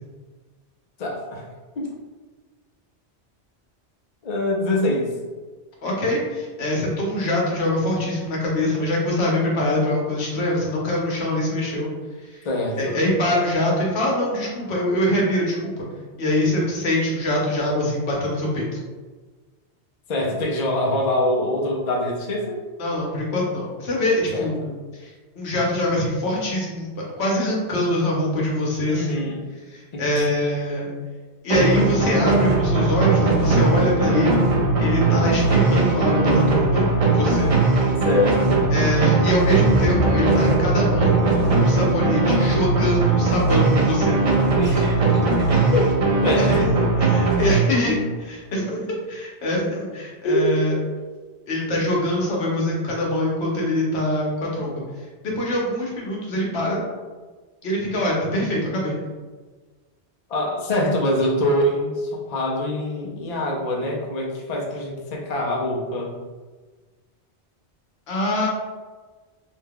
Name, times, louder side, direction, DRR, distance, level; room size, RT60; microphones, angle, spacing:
voice 1, 1.0-1.4 1.8-1.9 4.2-5.1 12.4-13.0 20.1-22.6 24.3-24.7 28.9-29.5 29.9-30.2 31.9-32.0 34.9-35.4 38.0-38.6 44.6-44.8 45.7-45.9 46.2-46.7 50.2-50.5 60.3-66.1, left 1 dB, 45° left, -2 dB, 0.6 m, -24 dB
voice 2, 5.8-11.9 12.3-12.4 12.8-15.9 16.2-18.8 22.8-24.6 24.9-26.9 27.2-29.2 29.7-30.9 31.4-34.4 34.8-37.5 38.7-44.5 46.4-46.7 47.1-50.7 51.5-54.8 55.2-56.8 57.6-59.0 68.1-68.5, left 1 dB, 70° left, -3 dB, 1.1 m, -24 dB
sound 1, 31.5-48.0, right 3 dB, 45° right, 0.5 m, -19 dB
Gurgling, 38.9-39.1 39.5-46.0, left 1 dB, 10° left, 1.1 m, -31 dB
2.7 x 2.2 x 3.5 m, 1.3 s
omnidirectional pair, 1.1 m